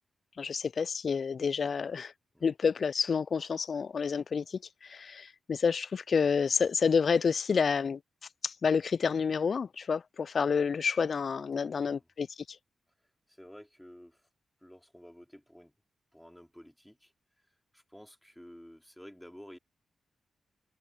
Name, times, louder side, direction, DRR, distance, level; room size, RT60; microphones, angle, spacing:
voice 1, 0.4-2.1 2.4-8.0 8.4-12.3, left 6 dB, 60° left, 0.3 m, -29 dB
voice 2, 11.6-12.1 13.0-14.3 14.6-15.7 16.1-19.6, equal, 5° left, 4.1 m, -53 dB
supercardioid pair, 40°, 0 cm